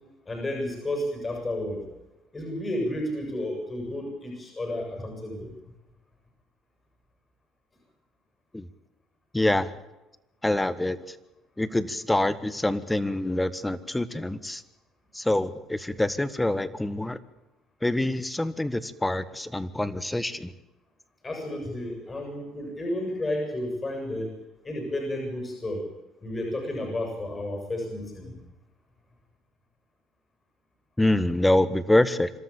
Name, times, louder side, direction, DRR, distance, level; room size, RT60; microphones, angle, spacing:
voice 1, 0.3-1.8 2.3-5.5 21.2-24.4 24.6-25.8 26.2-28.3, left 1 dB, 25° left, 3 dB, 7.7 m, -32 dB
voice 2, 9.3-9.7 10.4-11.1 11.6-14.6 15.1-17.2 17.8-20.5 31.0-32.3, left 1 dB, 10° left, 16 dB, 1.5 m, -25 dB
25.5 x 13.5 x 8.8 m, 0.99 s
supercardioid pair, 80°, 0 cm